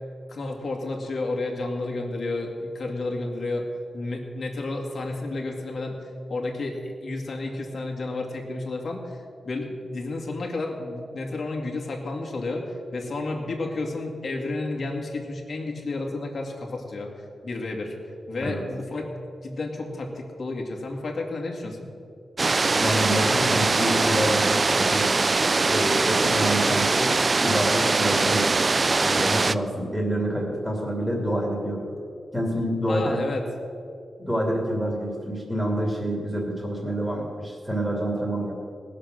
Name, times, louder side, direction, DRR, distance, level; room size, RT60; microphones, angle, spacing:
voice 1, 0.3-3.7 3.9-17.1 17.4-17.9 18.3-19.1 19.4-21.9 32.9-33.4, left 2 dB, 50° left, 0 dB, 2.0 m, -31 dB
sound 1, 22.4-29.5, right 3 dB, 30° right, 0.3 m, -22 dB
voice 2, 22.8-25.1 25.7-27.1 27.4-28.6 29.0-31.9 32.3-33.2 34.2-38.5, equal, 5° right, -2 dB, 2.7 m, -27 dB
19.0 x 6.8 x 6.4 m, 2.4 s
wide cardioid pair, 130°, 0 cm